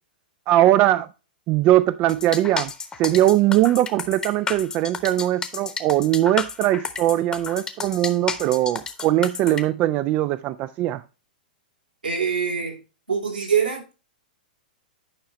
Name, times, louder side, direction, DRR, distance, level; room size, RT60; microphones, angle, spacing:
voice 1, 0.5-1.1 1.5-2.7 3.0-11.0, right 14 dB, 30° right, 0.3 m, -20 dB
sound 1, 2.1-9.6, left 5 dB, 15° left, 0.9 m, -31 dB
voice 2, 12.0-12.8 13.1-13.9, right 6 dB, 80° right, 3.2 m, -24 dB
9.8 x 5.6 x 3.1 m
figure-of-eight pair, 105°, 5 cm